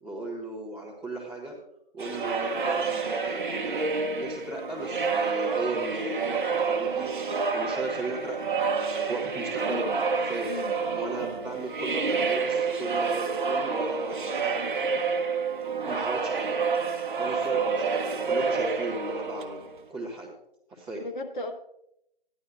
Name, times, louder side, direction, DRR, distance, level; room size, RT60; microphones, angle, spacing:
voice 1, 0.0-1.6 1.9-3.9 4.1-8.4 9.1-9.8 10.3-10.5 10.9-15.0 15.9-16.6 17.2-19.6 19.9-20.3 20.7-21.0, right 2 dB, 5° right, -6 dB, 1.1 m, -37 dB
sound 1, 2.0-19.9, right 4 dB, 55° right, 1.0 m, -28 dB
voice 2, 9.6-10.0 10.4-10.7 21.0-21.5, left 2 dB, 50° left, 3 dB, 1.5 m, -35 dB
14.5 x 11.0 x 2.5 m, 0.81 s
figure-of-eight pair, 160°, 30 cm